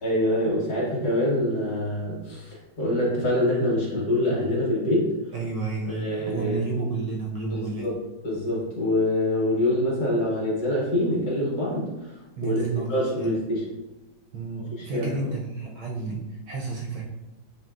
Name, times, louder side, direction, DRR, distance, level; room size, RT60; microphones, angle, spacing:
voice 1, 0.0-5.1 5.9-6.6 7.5-8.0 8.2-11.9 12.4-12.6 12.9-13.7 14.8-15.1, left 1 dB, 55° left, -4 dB, 1.3 m, -25 dB
voice 2, 5.3-8.0 12.4-13.3 14.3-17.0, right 3 dB, 70° right, -2 dB, 1.1 m, -31 dB
5.6 x 2.7 x 2.4 m, 1.0 s
omnidirectional pair, 2.3 m